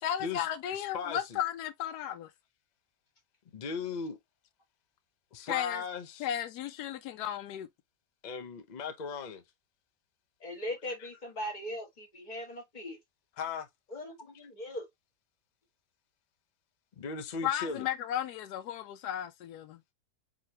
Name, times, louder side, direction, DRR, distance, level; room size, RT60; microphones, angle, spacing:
voice 1, 0.0-2.3 5.5-5.8 6.2-7.7 17.4-19.8, left 10 dB, 85° left, 1.1 m, -34 dB
voice 2, 0.7-1.4 3.5-4.2 5.3-6.3 8.2-9.4 13.4-13.7 17.0-17.9, left 5 dB, 55° left, 0.5 m, -37 dB
voice 3, 10.4-13.0 13.9-14.9, left 1 dB, 30° left, 1.6 m, -39 dB
4.9 x 3.0 x 2.7 m
omnidirectional pair, 1.6 m